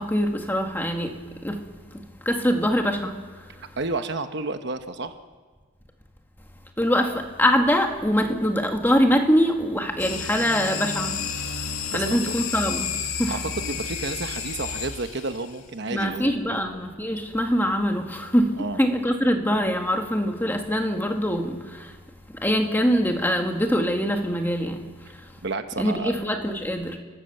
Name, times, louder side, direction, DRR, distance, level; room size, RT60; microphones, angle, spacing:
voice 1, 0.0-3.6 6.8-13.4 15.9-22.0 22.3-25.3 25.8-27.0, equal, 10° left, 1.7 m, -24 dB
voice 2, 3.8-5.1 11.9-12.2 13.3-16.6 18.6-18.8 25.4-26.1, right 3 dB, 55° right, 1.0 m, -31 dB
sound 1, 10.0-15.5, left 6 dB, 85° left, 2.0 m, -31 dB
29.5 x 13.5 x 7.9 m
head